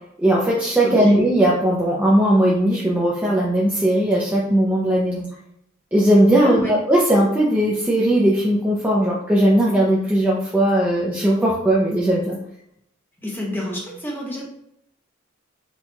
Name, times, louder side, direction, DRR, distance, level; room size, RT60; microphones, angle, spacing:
voice 1, 0.2-5.3 5.9-12.4, right 1 dB, 10° right, -6 dB, 0.4 m, -18 dB
voice 2, 0.8-1.2 6.4-6.8 13.2-14.7, equal, 10° left, -3 dB, 0.8 m, -29 dB
4.3 x 2.3 x 2.7 m, 0.75 s
head